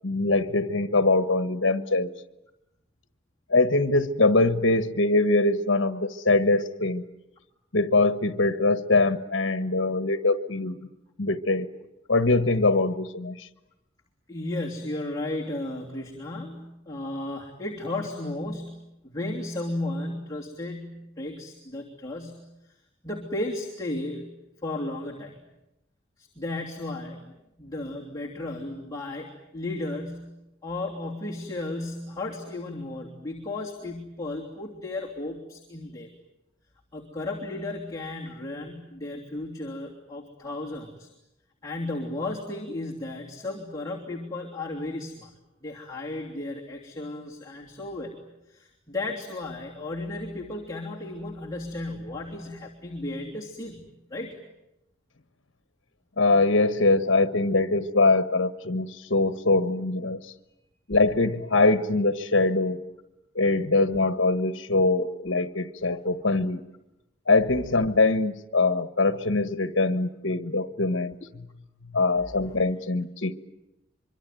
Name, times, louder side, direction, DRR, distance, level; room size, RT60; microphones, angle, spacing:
voice 1, 0.0-2.1 3.5-7.0 7.7-10.8 11.2-11.7 12.1-13.5 56.2-60.2 60.9-62.8 63.3-66.6 67.3-71.5 71.9-73.4, left 2 dB, 70° left, 11 dB, 1.4 m, -23 dB
voice 2, 14.3-22.7 23.0-24.3 24.6-25.4 26.2-27.3 27.6-30.4 30.6-36.1 36.9-41.1 41.6-45.3 45.6-48.2 48.5-53.8 54.1-54.4 65.8-66.0 72.5-72.6, left 2 dB, 20° left, -3 dB, 3.1 m, -34 dB
25.0 x 24.5 x 9.2 m, 0.90 s
head